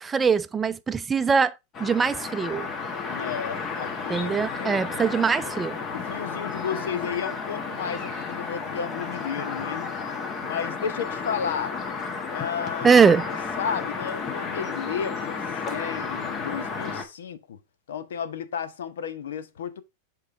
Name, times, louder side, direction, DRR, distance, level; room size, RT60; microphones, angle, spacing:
voice 1, 0.0-1.5 1.8-2.7 4.1-5.8 12.8-13.2, right 6 dB, 20° right, 0.5 m, -21 dB
sound 1, 1.7-17.0, left 5 dB, 35° left, 1.3 m, -32 dB
voice 2, 3.1-4.8 5.9-9.9 10.4-11.8 12.3-12.9 13.3-17.6 17.9-19.8, left 7 dB, 80° left, 0.8 m, -33 dB
6.5 x 3.9 x 4.1 m
hypercardioid pair, 110°, 0 cm